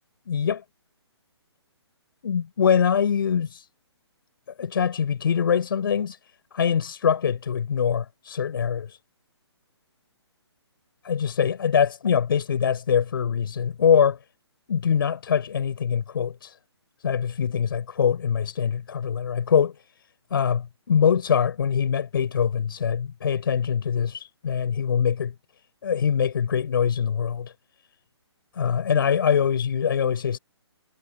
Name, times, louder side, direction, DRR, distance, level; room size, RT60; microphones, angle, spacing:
voice 1, 0.3-0.6 2.2-3.6 4.6-6.2 6.5-9.0 11.0-14.2 14.7-16.5 17.0-19.7 20.3-25.3 25.8-27.5 28.5-30.4, left 7 dB, 50° left, 5.0 m, -23 dB
figure-of-eight pair, 135°, 14 cm